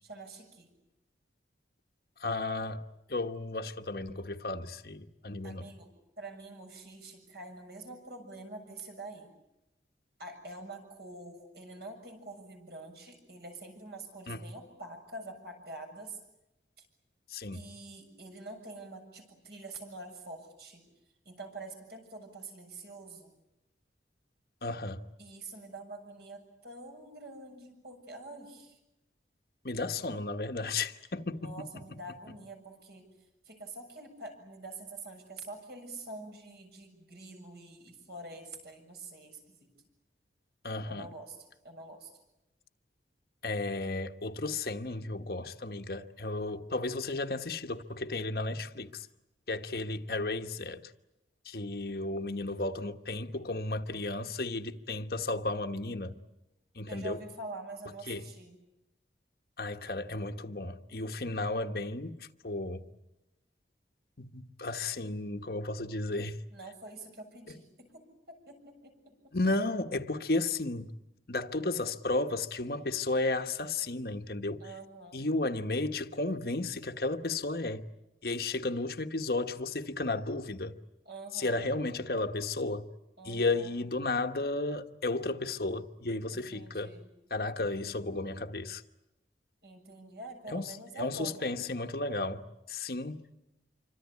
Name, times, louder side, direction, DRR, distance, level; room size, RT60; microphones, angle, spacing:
voice 1, 0.0-0.7 5.4-5.9 6.2-9.3 10.2-16.2 16.8-16.9 17.5-20.9 21.2-23.3 25.2-28.8 31.4-33.1 33.4-39.7 40.9-42.2 56.9-58.6 66.5-69.3 74.6-75.2 81.1-81.6 83.2-83.7 86.3-87.1 89.6-91.5, right 2 dB, 65° right, 7.1 m, -46 dB
voice 2, 2.2-2.8 3.1-5.7 14.3-14.4 17.3-17.6 24.6-25.0 29.6-31.6 40.6-41.1 43.4-49.1 49.5-50.8 51.4-56.2 56.7-57.2 58.1-58.2 59.6-62.9 64.2-66.4 69.3-70.9 71.3-74.7 75.1-77.9 78.2-80.7 81.3-82.9 83.2-86.9 87.3-88.8 90.5-93.2, left 2 dB, 55° left, 1.2 m, -33 dB
27.0 x 24.5 x 8.4 m
head